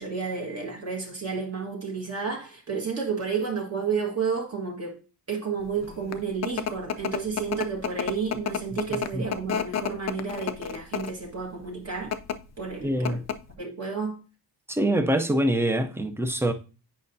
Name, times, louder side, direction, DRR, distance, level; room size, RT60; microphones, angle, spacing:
voice 1, 0.0-5.0 5.3-12.1 12.6-13.2 13.6-14.2, right 5 dB, 40° right, 1.6 m, -31 dB
sound 1, 5.8-11.3 12.0-12.4 12.7-12.8 13.1-13.5, left 8 dB, 45° left, 0.5 m, -30 dB
voice 2, 12.8-13.3 14.7-16.5, right 1 dB, 5° right, 0.5 m, -24 dB
8.7 x 5.5 x 2.6 m
wide cardioid pair, 165°, 39 cm